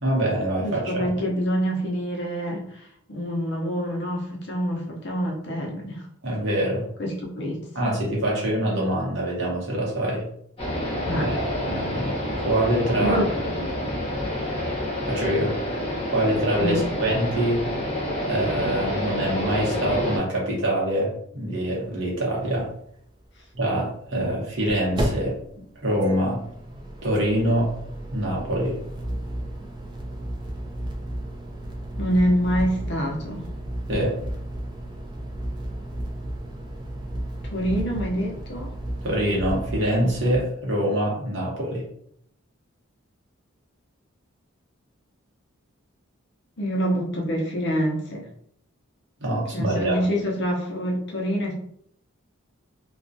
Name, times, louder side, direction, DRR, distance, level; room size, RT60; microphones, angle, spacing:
voice 1, 0.0-1.1 6.2-6.8 7.7-10.2 11.1-12.1 12.4-13.2 15.1-15.5 16.1-17.6 18.2-22.7 23.5-25.4 25.8-26.4 27.0-27.7 28.1-28.8 33.9-34.1 39.0-41.8 49.2-50.0, right 1 dB, 60° right, -3 dB, 0.9 m, -25 dB
voice 2, 0.6-6.0 7.0-7.6 11.0-11.3 13.0-13.3 16.6-16.8 32.0-33.4 37.4-38.7 46.6-48.3 49.5-51.5, equal, 55° left, -1 dB, 0.6 m, -26 dB
sound 1, 10.6-20.2, left 1 dB, 25° left, 0.9 m, -28 dB
sound 2, 21.8-21.9 22.1-22.2 24.1-40.4, right 1 dB, 20° right, 0.3 m, -33 dB
2.4 x 2.2 x 2.5 m, 0.68 s
head